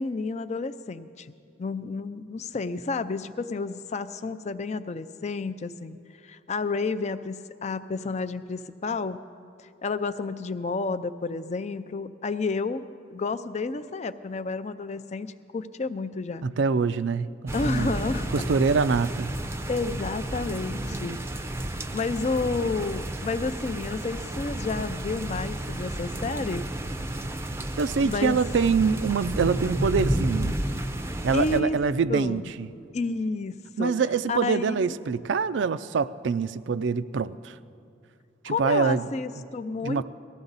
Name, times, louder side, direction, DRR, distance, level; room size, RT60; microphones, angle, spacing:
voice 1, 0.0-1.3 1.6-6.0 6.2-9.2 9.6-16.4 17.5-18.4 19.7-21.2 21.7-26.6 28.0-28.4 31.3-31.8 32.1-32.5 32.9-33.9 34.3-34.9 38.5-40.0, left 3 dB, 40° left, 0.4 m, -30 dB
voice 2, 16.4-17.9 18.3-19.3 27.8-30.6 31.2-32.7 33.8-37.6 38.4-39.1 39.8-40.0, right 5 dB, 75° right, 0.4 m, -25 dB
sound 1, 17.5-31.6, right 1 dB, 15° right, 0.5 m, -32 dB
19.0 x 14.0 x 4.0 m
head